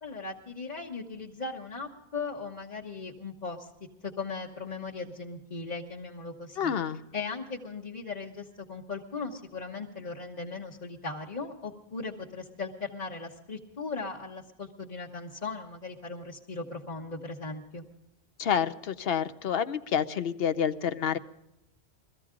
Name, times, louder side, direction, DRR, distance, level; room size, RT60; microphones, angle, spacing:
voice 1, 0.0-3.7 4.0-6.7 7.1-17.8, left 4 dB, 40° left, -4 dB, 1.3 m, -38 dB
voice 2, 6.6-7.0 18.4-21.2, left 8 dB, 65° left, 11 dB, 0.9 m, -28 dB
22.0 x 15.0 x 3.8 m, 0.90 s
omnidirectional pair, 1.1 m